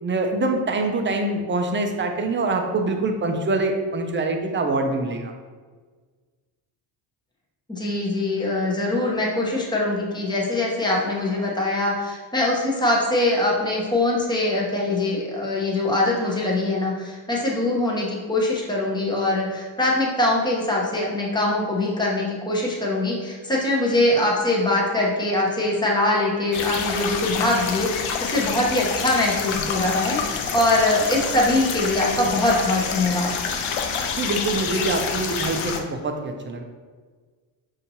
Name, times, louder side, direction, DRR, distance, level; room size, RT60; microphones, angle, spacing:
voice 1, 0.0-5.3 34.2-36.6, right 2 dB, 25° right, 4 dB, 0.5 m, -24 dB
voice 2, 7.7-33.3, left 2 dB, 10° left, -3 dB, 0.9 m, -23 dB
sound 1, 26.5-35.8, left 6 dB, 80° left, 0.6 m, -27 dB
5.0 x 2.7 x 2.8 m, 1.5 s
cardioid pair, 90°, 47 cm